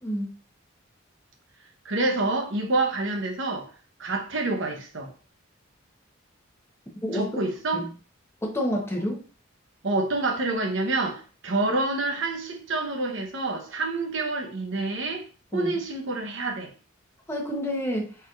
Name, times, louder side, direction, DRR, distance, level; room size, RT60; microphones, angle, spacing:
voice 1, 0.0-0.3 7.0-7.2 7.7-7.9 8.4-9.2 15.5-15.8 17.3-18.2, equal, 15° left, 1.0 m, -28 dB
voice 2, 1.8-3.7 4.0-5.1 7.1-7.9 9.8-15.2 15.5-16.7, right 2 dB, 65° right, 1.0 m, -27 dB
4.2 x 4.2 x 2.5 m
head